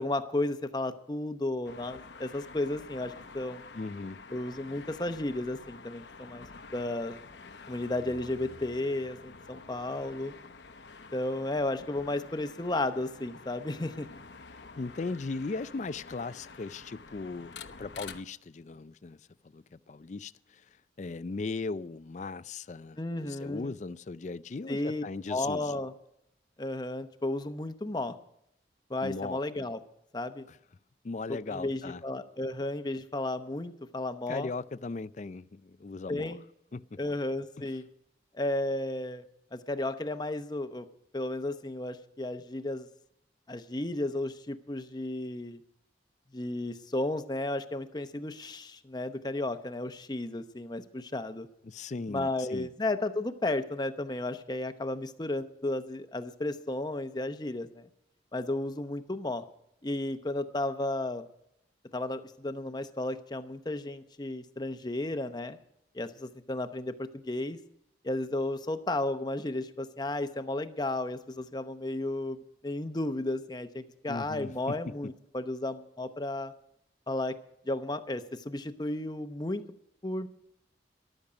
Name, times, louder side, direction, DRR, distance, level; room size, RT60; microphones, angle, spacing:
voice 1, 0.0-3.6 4.3-6.5 6.7-7.2 7.7-10.3 11.1-14.1 23.0-23.7 24.7-25.9 26.6-28.1 28.9-29.8 30.1-30.4 31.3-34.5 36.1-36.4 37.0-37.9 38.3-39.2 39.5-40.9 41.1-42.9 43.5-45.6 46.3-51.5 52.1-57.8 58.3-59.4 59.8-61.2 61.9-65.6 65.9-67.6 68.0-76.5 77.1-77.3 77.6-79.6 80.0-80.3, left 2 dB, 25° left, 9 dB, 0.8 m, -33 dB
sound 1, 1.6-18.2, left 4 dB, 80° left, 1.0 m, -49 dB
voice 2, 3.7-4.2 14.8-19.3 19.5-25.8 29.0-29.4 30.5-30.6 31.0-32.0 34.3-36.4 36.7-37.0 51.6-52.7 74.1-74.9, left 3 dB, 40° left, 16 dB, 0.4 m, -38 dB
14.5 x 12.0 x 5.1 m, 0.77 s
head